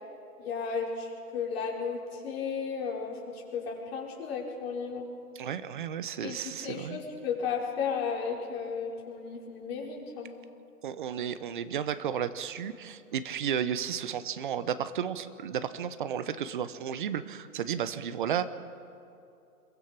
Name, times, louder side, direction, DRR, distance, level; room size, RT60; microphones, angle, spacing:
voice 1, 0.4-5.1 6.2-6.4 6.6-10.4, left 6 dB, 40° left, -2 dB, 5.2 m, -34 dB
voice 2, 5.4-7.0 10.8-18.4, right 8 dB, 35° right, 14 dB, 0.9 m, -33 dB
26.5 x 22.5 x 6.0 m, 2.7 s
hypercardioid pair, 155°, 46 cm